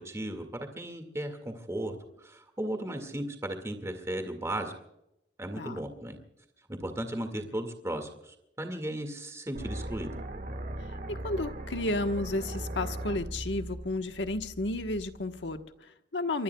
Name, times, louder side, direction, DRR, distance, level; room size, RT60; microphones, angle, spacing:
voice 1, 0.0-4.7 5.4-6.2 6.7-10.1, right 1 dB, 15° right, 6 dB, 2.0 m, -36 dB
sound 1, 9.5-15.5, right 1 dB, 55° right, 1.9 m, -39 dB
voice 2, 11.1-16.4, left 2 dB, 85° left, 7 dB, 1.3 m, -32 dB
24.5 x 24.0 x 2.3 m, 0.82 s
head